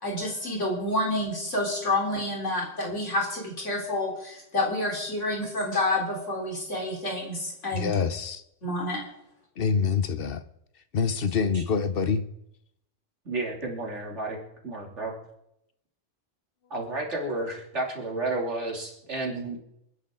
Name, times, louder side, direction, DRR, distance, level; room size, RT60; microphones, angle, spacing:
voice 1, 0.0-7.9 8.6-9.0, left 1 dB, 90° left, -1 dB, 4.1 m, -28 dB
voice 2, 7.7-8.4 9.6-10.4 10.9-12.2, left 5 dB, 55° left, 11 dB, 1.0 m, -26 dB
voice 3, 13.2-14.4 14.6-15.1 16.7-19.6, right 2 dB, 75° right, -1 dB, 3.3 m, -31 dB
27.0 x 10.0 x 3.8 m, 0.80 s
omnidirectional pair, 1.2 m